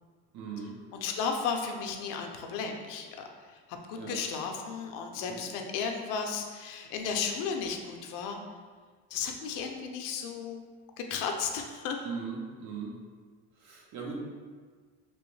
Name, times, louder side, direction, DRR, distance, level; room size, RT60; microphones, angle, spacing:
voice 1, 0.3-0.7 4.0-4.2 12.0-12.9 13.6-14.2, right 5 dB, 60° right, -1 dB, 0.8 m, -38 dB
voice 2, 0.9-3.6 3.9-8.4 9.1-10.6 11.1-12.1, left 6 dB, 65° left, 3 dB, 0.6 m, -34 dB
3.0 x 3.0 x 3.1 m, 1.6 s
cardioid pair, 125°, 34 cm